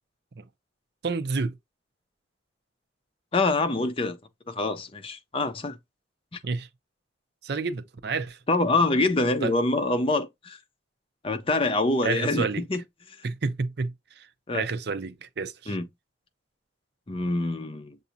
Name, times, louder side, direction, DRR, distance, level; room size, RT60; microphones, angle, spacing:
voice 1, 1.0-1.6 6.4-6.7 7.4-8.4 9.4-9.5 12.0-12.6 13.2-14.3 14.5-15.8, right 4 dB, 60° right, 0.6 m, -30 dB
voice 2, 3.3-4.2 4.5-5.8 6.3-6.4 8.5-10.6 11.2-12.8 14.5-14.6 15.7-15.9 17.1-18.0, left 2 dB, 30° left, 0.6 m, -25 dB
6.9 x 2.6 x 2.7 m
head